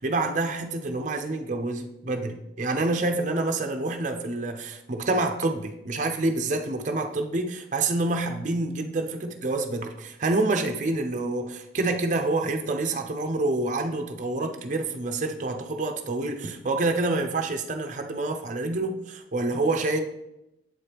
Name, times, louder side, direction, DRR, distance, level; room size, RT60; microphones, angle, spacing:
voice 1, 0.0-20.0, right 2 dB, 45° right, 5 dB, 0.5 m, -27 dB
7.6 x 4.4 x 3.4 m, 0.88 s
head